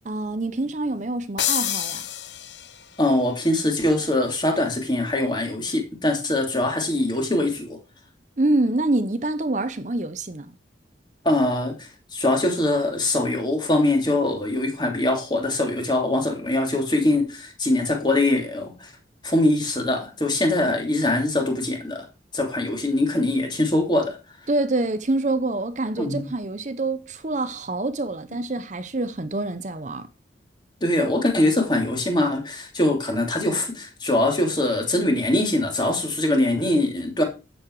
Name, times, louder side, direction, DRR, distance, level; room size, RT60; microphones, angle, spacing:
voice 1, 0.0-2.1 8.4-10.5 24.5-30.1, right 2 dB, 40° right, 0.8 m, -26 dB
sound 1, 1.4-3.0, left 11 dB, 75° left, 1.0 m, -27 dB
voice 2, 3.0-7.8 11.2-18.9 19.2-22.1 22.3-24.2 26.0-26.3 30.8-37.2, left 1 dB, 25° left, 3.0 m, -23 dB
11.5 x 7.9 x 4.7 m
head